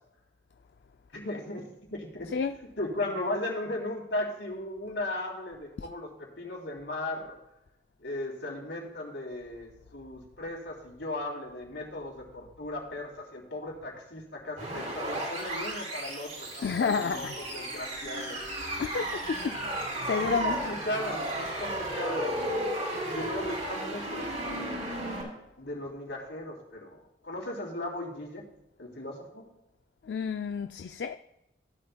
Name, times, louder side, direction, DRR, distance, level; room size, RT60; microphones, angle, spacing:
voice 1, 1.1-2.3 2.8-7.4 8.0-18.4 20.2-22.4 23.1-24.9 25.6-28.4 28.8-29.5, left 1 dB, 85° left, 3.1 m, -37 dB
sound 1, 14.6-25.2, right 1 dB, 40° right, 3.9 m, -34 dB
voice 2, 16.6-17.4 18.8-19.6 20.0-20.6 30.0-31.2, left 6 dB, 65° left, 0.4 m, -30 dB
sound 2, 17.1-22.6, equal, 80° right, 2.7 m, -45 dB
15.5 x 11.0 x 2.3 m
head